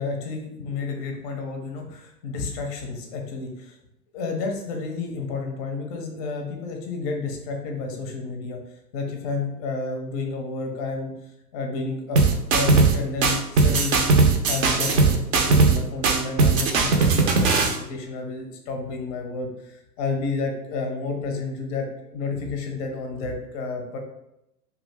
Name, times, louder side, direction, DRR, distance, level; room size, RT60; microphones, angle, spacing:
voice 1, 0.0-3.8 4.1-8.6 8.9-11.1 11.5-14.1 14.5-24.0, left 3 dB, 25° left, 3 dB, 0.5 m, -31 dB
sound 1, 12.2-13.0 13.2-15.8 16.0-17.8, right 4 dB, 55° right, 0.6 m, -18 dB
2.7 x 2.3 x 3.3 m, 0.84 s
figure-of-eight pair, 105°, 48 cm